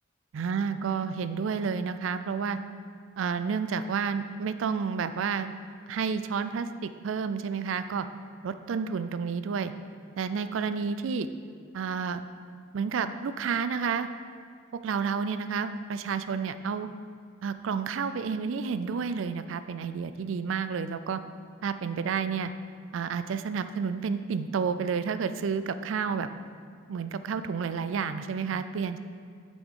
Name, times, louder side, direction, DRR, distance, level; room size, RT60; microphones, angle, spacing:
voice 1, 0.3-2.6 3.2-5.5 5.9-8.1 8.4-9.7 10.2-11.3 11.7-12.2 12.7-14.1 14.7-16.9 17.4-21.2 21.6-22.5 22.9-26.3 26.9-29.0, right 6 dB, 70° right, 11 dB, 0.4 m, -30 dB
8.0 x 6.1 x 3.7 m, 2.1 s
head